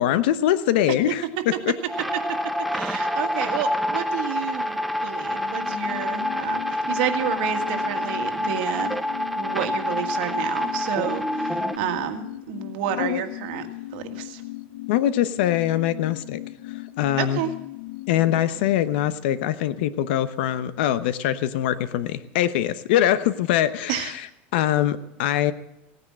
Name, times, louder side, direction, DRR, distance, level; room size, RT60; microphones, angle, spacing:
voice 1, 0.0-1.5 13.0-13.2 14.9-16.4 17.0-17.4 18.1-24.3 24.5-25.5, left 12 dB, 65° left, 14 dB, 1.0 m, -23 dB
sound 1, 1.9-11.8, left 1 dB, ahead, 0.5 m, -27 dB
voice 2, 2.7-9.0 9.4-13.6 13.9-14.4 17.2-17.5 23.9-24.1, right 10 dB, 60° right, 8 dB, 1.8 m, -30 dB
sound 2, 5.1-20.2 20.5-20.6, left 18 dB, 45° left, 0.6 m, -38 dB
17.0 x 9.7 x 7.5 m, 0.85 s
supercardioid pair, 175°, 6 cm